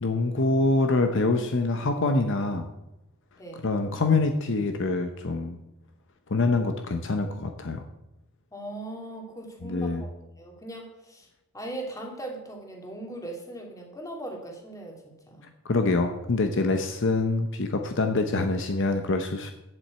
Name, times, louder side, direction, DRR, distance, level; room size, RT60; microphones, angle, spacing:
voice 1, 0.0-2.7 3.6-5.6 6.3-7.8 9.6-10.1 15.7-19.5, left 3 dB, 60° left, 6 dB, 0.7 m, -25 dB
voice 2, 3.4-3.7 8.5-11.3 11.5-15.5, right 1 dB, 15° left, 0 dB, 2.2 m, -39 dB
7.8 x 7.3 x 8.0 m, 0.93 s
head